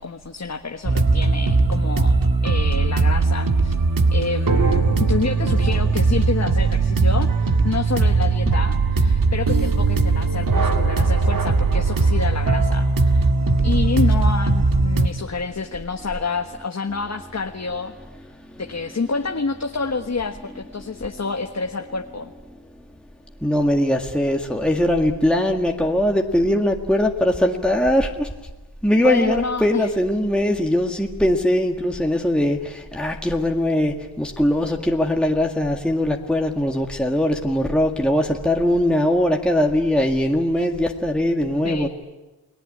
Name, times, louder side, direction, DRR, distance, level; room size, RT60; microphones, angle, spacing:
voice 1, 0.0-2.2 2.4-3.7 4.1-13.3 13.6-17.9 18.6-22.3 29.0-29.9 41.6-41.9, left 4 dB, 35° left, 4 dB, 1.4 m, -28 dB
sound 1, 0.8-15.1, right 3 dB, 45° right, 1.9 m, -19 dB
voice 2, 23.4-28.3 28.8-41.9, left 1 dB, ahead, 2 dB, 1.9 m, -21 dB
30.0 x 19.5 x 8.7 m, 1.1 s
wide cardioid pair, 85°, 48 cm